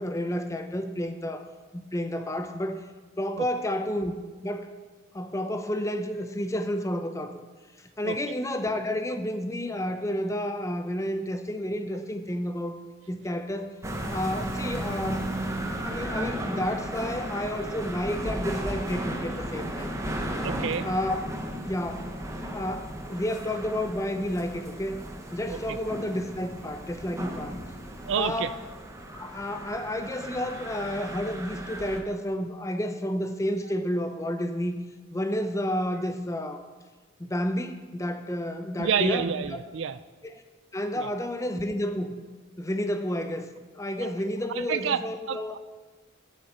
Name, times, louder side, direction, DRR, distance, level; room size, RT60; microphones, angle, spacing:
voice 1, 0.0-1.4 1.7-2.8 3.2-4.2 4.4-4.7 5.1-7.4 8.0-12.8 13.1-13.7 14.1-15.2 15.8-20.0 20.8-21.2 21.7-25.0 25.3-27.6 28.2-28.5 29.1-34.8 35.1-36.6 37.2-39.6 40.2-40.3 40.7-42.1 42.6-43.5 43.7-45.6, left 1 dB, 15° left, 7 dB, 0.6 m, -30 dB
sound 1, 13.8-32.0, right 1 dB, 15° right, 0.9 m, -35 dB
voice 2, 20.4-20.9 25.5-25.8 28.1-28.5 38.8-40.0 41.0-41.1 44.0-44.1 44.5-45.0 45.3-45.6, right 7 dB, 60° right, 14 dB, 0.4 m, -29 dB
8.5 x 6.7 x 7.8 m, 1.3 s
head